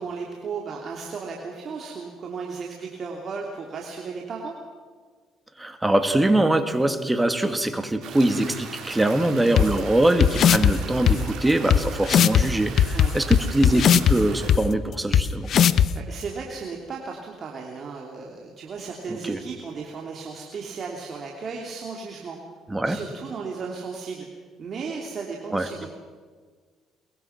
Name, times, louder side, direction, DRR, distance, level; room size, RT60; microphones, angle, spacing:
voice 1, 0.0-4.5 12.9-13.1 15.9-22.4 22.8-24.3 24.6-25.9, right 5 dB, 45° right, 0 dB, 3.1 m, -35 dB
voice 2, 5.6-15.5 19.1-19.4 22.7-23.0 25.5-25.7, right 1 dB, 10° right, 9 dB, 2.1 m, -23 dB
sound 1, 8.0-14.5, right 6 dB, 70° right, 5.3 m, -40 dB
sound 2, 9.6-9.7 10.2-10.7 11.1-11.2 11.7-11.8 12.1-12.4 12.8-14.1 14.5-14.6 15.1-15.2 15.5-15.9, left 9 dB, 60° left, 0.9 m, -16 dB
23.0 x 22.0 x 6.0 m, 1.5 s
cardioid pair, 90°, 0 cm